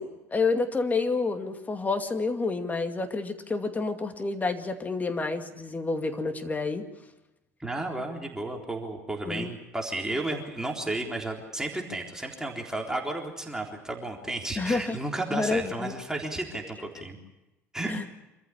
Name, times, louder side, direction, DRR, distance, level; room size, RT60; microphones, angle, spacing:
voice 1, 0.0-6.8 9.3-9.5 14.6-15.0 15.3-15.9 17.9-18.1, left 3 dB, 20° left, 6 dB, 2.4 m, -29 dB
voice 2, 7.6-17.2 17.7-18.1, right 2 dB, 5° right, 0 dB, 3.8 m, -33 dB
26.0 x 14.0 x 9.9 m, 0.98 s
hypercardioid pair, 70°, 8 cm